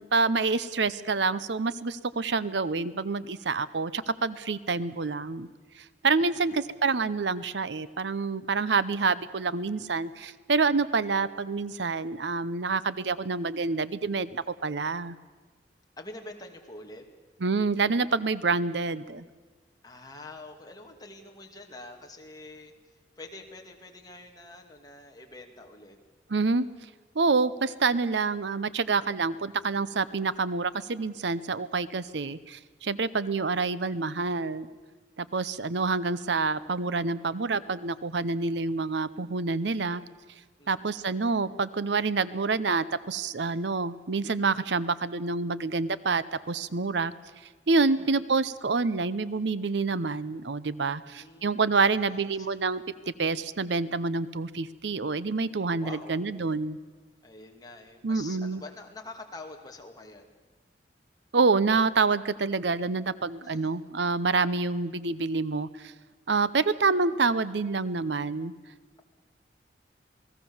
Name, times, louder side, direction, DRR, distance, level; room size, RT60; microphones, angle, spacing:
voice 1, 0.0-5.5 5.8-15.2 17.4-19.2 26.3-26.7 27.1-34.7 35.2-40.0 40.7-47.1 47.7-52.8 53.2-56.8 58.0-58.6 61.3-65.9 66.3-68.5, right 4 dB, 75° right, 16 dB, 0.8 m, -27 dB
voice 2, 6.2-6.8 16.0-17.1 19.8-26.0 40.6-40.9 47.8-48.2 50.9-52.5 55.8-56.2 57.2-60.4 63.4-63.8, left 2 dB, 20° left, 2 dB, 2.5 m, -46 dB
28.0 x 19.0 x 7.2 m, 1.3 s
head